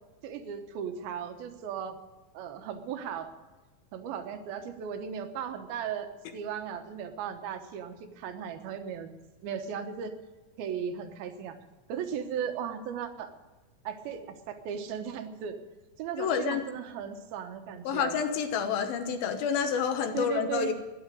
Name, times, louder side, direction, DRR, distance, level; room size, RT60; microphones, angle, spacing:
voice 1, 0.2-2.0 2.3-3.3 3.9-9.1 9.4-10.2 10.6-11.6 11.9-13.3 13.8-15.6 16.0-18.2 20.1-20.7, right 8 dB, 85° right, 7 dB, 3.0 m, -36 dB
voice 2, 16.2-16.6 17.8-20.7, left 7 dB, 80° left, 7 dB, 3.0 m, -28 dB
13.0 x 10.0 x 9.1 m, 1.2 s
omnidirectional pair, 4.2 m